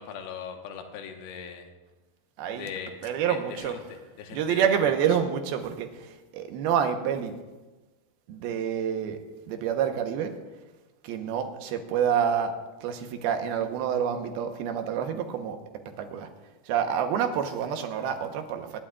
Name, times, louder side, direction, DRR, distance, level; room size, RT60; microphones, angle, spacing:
voice 1, 0.0-1.7 2.5-3.0 3.3-5.1, left 7 dB, 80° left, 4 dB, 3.0 m, -40 dB
voice 2, 2.4-2.7 3.0-3.8 4.3-7.4 8.3-9.2 9.5-10.4 11.0-15.6 16.0-16.3 16.7-18.8, right 8 dB, 80° right, 6 dB, 2.9 m, -28 dB
25.5 x 11.5 x 2.4 m, 1.2 s
omnidirectional pair, 4.5 m